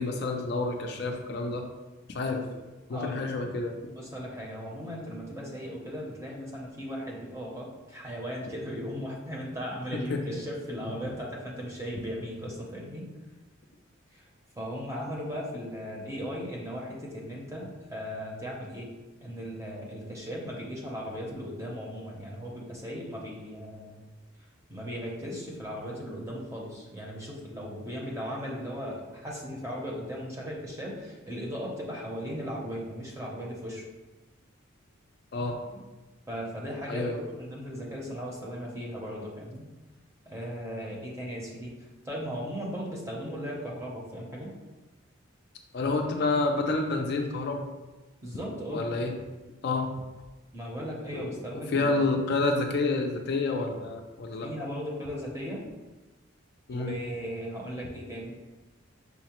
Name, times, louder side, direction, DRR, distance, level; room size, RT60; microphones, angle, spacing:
voice 1, 0.0-1.6 2.1-2.4 2.9-3.7 9.9-10.4 11.0-11.1 35.3-35.6 36.9-37.2 45.7-47.6 48.7-49.1 49.6-49.9 51.1-51.3 51.7-54.5 56.7-56.9, left 3 dB, 50° left, 3 dB, 0.3 m, -29 dB
voice 2, 2.9-3.2 3.9-13.1 14.1-14.2 14.6-18.9 19.2-24.0 24.7-33.8 36.3-39.6 40.3-41.7 42.0-44.5 48.2-48.9 50.5-52.0 54.4-55.6 56.7-58.3, equal, 15° right, -3 dB, 0.6 m, -37 dB
5.6 x 2.0 x 2.9 m, 1.2 s
head